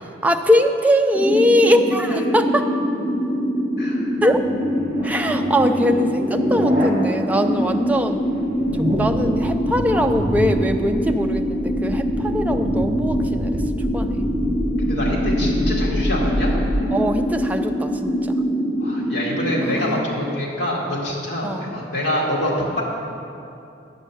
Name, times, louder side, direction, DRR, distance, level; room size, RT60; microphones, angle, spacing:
voice 1, 0.0-2.7 4.2-4.4 5.0-8.2 8.8-13.6 13.9-14.3 16.9-18.3 19.6-20.4 21.4-21.7, equal, 10° right, 5 dB, 0.4 m, -21 dB
sound 1, 1.1-19.8, equal, 35° left, 1.7 m, -24 dB
voice 2, 2.1-2.4 3.8-4.0 14.8-16.6 18.8-22.8, left 1 dB, 65° left, -4 dB, 2.0 m, -25 dB
sound 2, 4.1-6.9 7.2-16.8, equal, 25° right, 1.5 m, -27 dB
9.1 x 5.3 x 7.1 m, 2.7 s
head